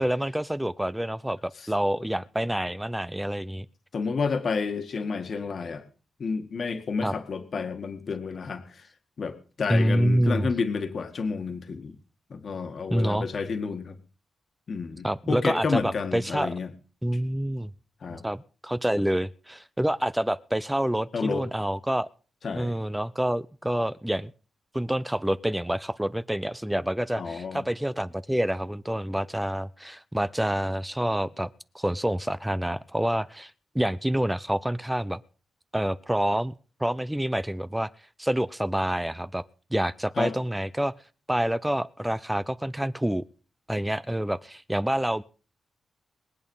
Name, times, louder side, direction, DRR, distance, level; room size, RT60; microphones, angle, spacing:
voice 1, 0.0-3.7 7.0-7.1 9.7-10.5 12.9-13.3 15.0-16.5 17.0-17.7 18.2-22.1 22.5-24.3 24.7-31.5 31.7-35.2 35.7-36.5 36.8-37.9 38.2-39.4 39.7-40.9 41.3-43.2 43.7-45.2, right 1 dB, 5° right, 15 dB, 0.6 m, -27 dB
voice 2, 3.9-5.8 6.2-8.9 9.2-11.9 12.3-14.0 14.7-16.7 18.0-18.2 21.1-21.4 22.4-22.7 27.1-27.7 40.2-40.3, left 5 dB, 55° left, 7 dB, 1.8 m, -30 dB
21.5 x 8.7 x 5.5 m, 0.38 s
cardioid pair, 105°, 0 cm